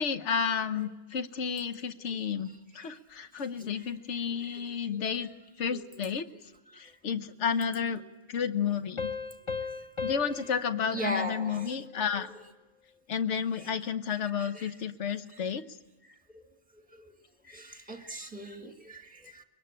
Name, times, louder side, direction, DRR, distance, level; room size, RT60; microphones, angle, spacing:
voice 1, 0.0-5.3 5.6-6.3 6.7-8.0 8.3-9.1 10.0-12.3 13.1-15.7, left 7 dB, 75° left, 10 dB, 1.3 m, -31 dB
sound 1, 9.0-12.3, left 5 dB, 30° left, 0.9 m, -38 dB
voice 2, 10.9-11.7 14.4-14.7 17.5-19.4, equal, 5° right, 5 dB, 1.7 m, -38 dB
23.5 x 22.5 x 8.9 m, 1.1 s
omnidirectional pair, 1.2 m